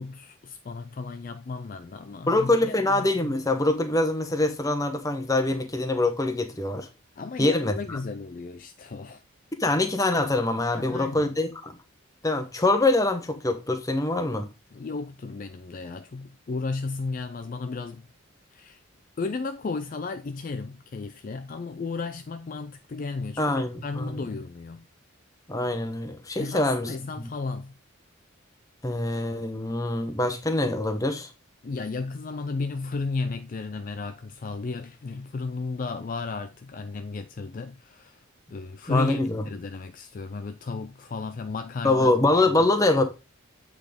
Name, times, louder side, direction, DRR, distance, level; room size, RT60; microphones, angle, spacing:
voice 1, 0.0-3.3 7.2-9.2 10.7-11.3 14.7-18.1 18.5-18.8 19.2-24.8 26.4-27.7 31.6-38.2 38.5-42.1 42.4-42.5, left 4 dB, 40° left, 0.3 m, -34 dB
voice 2, 2.3-6.9 7.4-8.0 9.6-11.8 12.2-14.5 23.4-24.3 25.5-26.9 27.2-27.3 28.8-31.3 38.9-39.4 41.8-43.0, left 2 dB, 15° left, 0.8 m, -24 dB
8.2 x 3.7 x 5.0 m
head